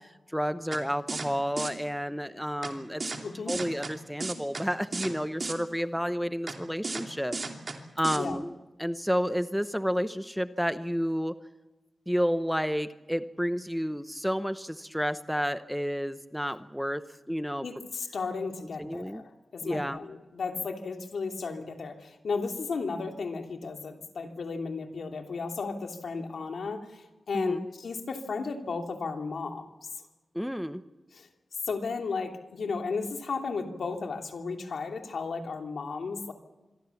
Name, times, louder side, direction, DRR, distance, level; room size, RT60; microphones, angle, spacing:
voice 1, 0.3-7.4 8.0-8.5 8.8-11.3 12.1-17.7 18.8-19.2 19.6-20.1 27.3-27.7 30.3-30.8, equal, ahead, 11 dB, 0.9 m, -31 dB
sound 1, 0.7-0.8 1.1-1.3 1.6-1.7 2.6-2.7 3.0-3.2 3.5-3.9 4.2-4.6 4.9-5.1 5.4-5.5 6.5-6.6 6.8-7.0 7.3-7.7 8.0-8.2, right 3 dB, 40° right, 2.8 m, -33 dB
voice 2, 3.2-3.5 8.1-8.4 17.6-19.2 19.5-29.9 31.1-31.3 31.7-36.3, left 4 dB, 80° left, 4 dB, 2.9 m, -34 dB
26.5 x 23.0 x 7.2 m, 1.1 s
wide cardioid pair, 145°, 0 cm